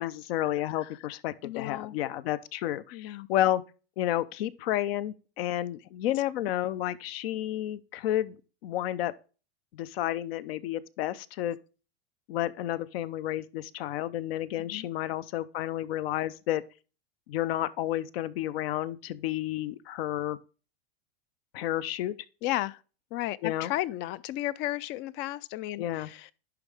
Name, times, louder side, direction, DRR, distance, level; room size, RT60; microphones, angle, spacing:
voice 1, 0.0-3.6 4.0-8.4 8.6-9.1 9.7-11.6 12.3-16.6 17.3-20.4 21.5-22.1 23.4-23.7 25.8-26.1, left 13 dB, 70° left, 0.7 m, -31 dB
voice 2, 1.4-1.9 2.9-3.3 14.6-14.9 22.4-22.8 23.1-26.3, left 16 dB, 40° left, 0.4 m, -34 dB
10.5 x 3.7 x 3.4 m
supercardioid pair, 125°, 31 cm